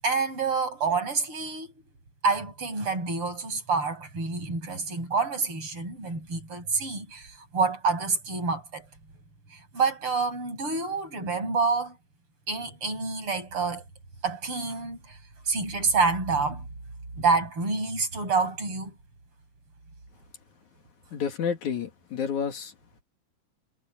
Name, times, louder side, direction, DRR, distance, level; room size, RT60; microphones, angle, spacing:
voice 1, 0.0-1.7 2.2-8.9 9.5-12.0 12.5-13.8 14.2-15.2 15.4-16.7 17.2-18.9, right 4 dB, 45° right, 8.7 m, -27 dB
voice 2, 21.1-22.7, left 7 dB, 80° left, 3.7 m, -30 dB
omnidirectional pair, 3.3 m